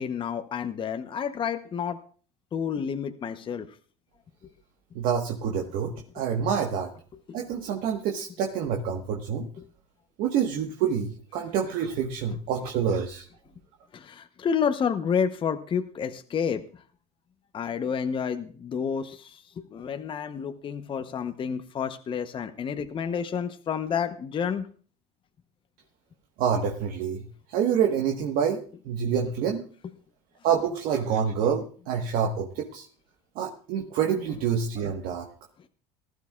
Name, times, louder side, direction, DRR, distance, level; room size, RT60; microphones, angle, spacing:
voice 1, 0.0-2.0 2.5-3.7 7.1-7.2 9.6-9.7 13.9-16.8 17.5-24.7, left 7 dB, 30° left, 8 dB, 0.8 m, -30 dB
voice 2, 4.9-6.9 7.3-9.5 10.2-13.3 26.4-29.6 30.4-32.9 33.3-35.3, right 7 dB, 65° right, 2 dB, 1.3 m, -27 dB
19.0 x 12.5 x 2.4 m, 0.43 s
supercardioid pair, 100°, 16 cm